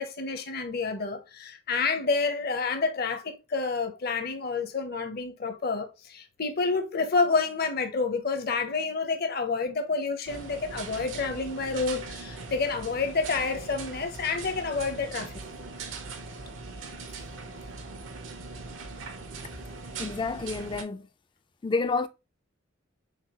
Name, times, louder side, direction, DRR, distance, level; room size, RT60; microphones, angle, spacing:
voice 1, 0.0-15.4, left 4 dB, 50° left, 0.8 m, -29 dB
sound 1, 10.3-20.8, right 4 dB, 80° right, 0.8 m, -40 dB
voice 2, 20.0-21.1 21.6-22.1, left 3 dB, 25° left, 0.3 m, -29 dB
6.2 x 2.3 x 3.0 m
head